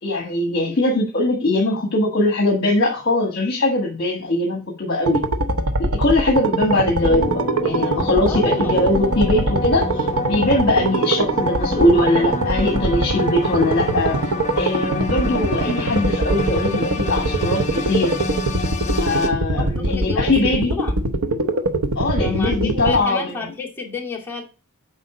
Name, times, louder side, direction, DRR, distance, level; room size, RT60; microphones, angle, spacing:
voice 1, 0.0-5.2 5.8-14.2 14.6-18.2 19.0-20.7 21.9-23.4, left 2 dB, 50° left, 1 dB, 1.4 m, -21 dB
sound 1, 5.1-23.0, right 2 dB, 85° right, 0.8 m, -23 dB
sound 2, 7.0-19.3, left 2 dB, 35° left, 0.9 m, -28 dB
voice 2, 8.3-8.8 19.5-21.0 22.2-24.4, left 4 dB, 10° left, -4 dB, 2.2 m, -30 dB
8.1 x 4.9 x 4.8 m, 0.33 s
head